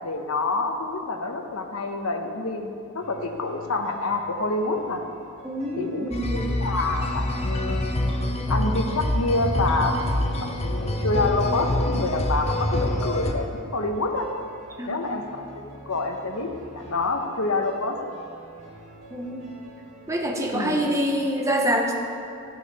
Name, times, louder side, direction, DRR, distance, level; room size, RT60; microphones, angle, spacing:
voice 1, 0.0-5.0 5.8-8.0 8.5-10.0 10.4-14.3 14.9-16.5 16.7-18.0 20.5-20.8, left 2 dB, 70° left, 4 dB, 1.0 m, -27 dB
sound 1, 3.0-20.8, right 1 dB, 60° right, 2.4 m, -47 dB
voice 2, 5.4-6.5 14.8-15.1 19.1-19.5 20.1-21.9, equal, 15° right, 1 dB, 0.9 m, -26 dB
sound 2, 6.1-13.3, left 1 dB, 30° left, 0.7 m, -26 dB
12.5 x 8.9 x 4.1 m, 2.5 s
head